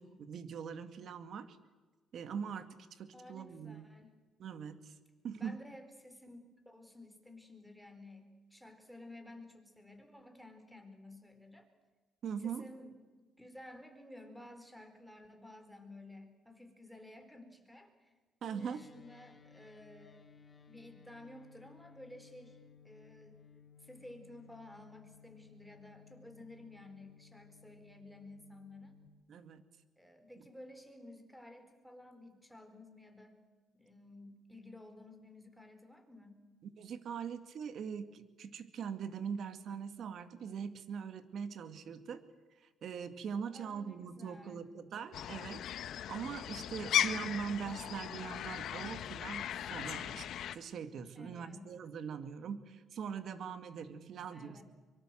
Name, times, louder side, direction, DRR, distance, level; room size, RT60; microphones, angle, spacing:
voice 1, 0.0-1.6 2.1-3.9 4.4-4.9 5.2-5.6 12.2-12.7 18.4-18.8 29.3-29.6 36.8-42.2 42.6-45.6 45.9-50.3 50.5-54.6, right 7 dB, 55° right, 10 dB, 2.2 m, -42 dB
voice 2, 3.1-4.2 5.4-11.7 12.4-13.0 13.4-18.1 18.4-20.2 20.7-22.6 22.8-23.4 23.8-28.9 30.0-33.4 33.7-36.4 43.5-44.6 46.9-47.3 51.1-51.7 54.3-54.6, left 1 dB, ahead, 7 dB, 4.5 m, -53 dB
sound 1, 18.6-29.1, left 6 dB, 20° left, 2.2 m, -60 dB
sound 2, 45.1-50.6, left 10 dB, 65° left, 1.2 m, -37 dB
24.0 x 23.5 x 7.7 m, 1.3 s
cardioid pair, 110°, 0 cm